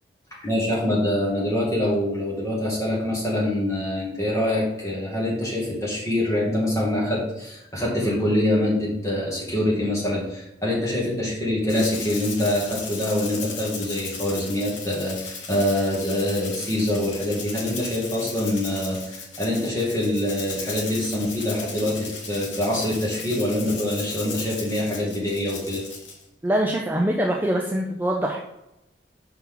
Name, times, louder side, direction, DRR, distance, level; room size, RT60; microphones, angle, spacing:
voice 1, 0.4-25.8, left 1 dB, 15° left, -5 dB, 2.2 m, -25 dB
Rattle (instrument), 11.7-26.2, left 4 dB, 85° left, 1.4 m, -36 dB
voice 2, 26.4-28.4, right 1 dB, 10° right, 0 dB, 0.5 m, -23 dB
5.8 x 5.8 x 3.8 m, 0.90 s
head